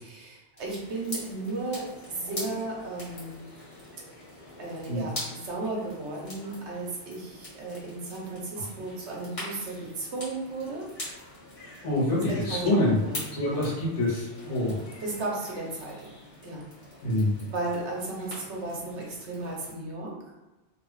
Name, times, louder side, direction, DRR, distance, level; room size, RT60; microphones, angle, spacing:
voice 1, 0.0-3.4 4.6-10.9 12.1-13.6 15.0-16.1 16.4-16.6 17.2-20.1, right 2 dB, 75° right, -2 dB, 1.1 m, -35 dB
sound 1, 0.6-19.7, left 1 dB, 65° left, 1.7 m, -44 dB
voice 2, 11.8-13.0 13.3-14.8 17.0-17.4, left 1 dB, 85° left, -7 dB, 1.6 m, -26 dB
3.3 x 2.3 x 3.1 m, 1.1 s
omnidirectional pair, 1.2 m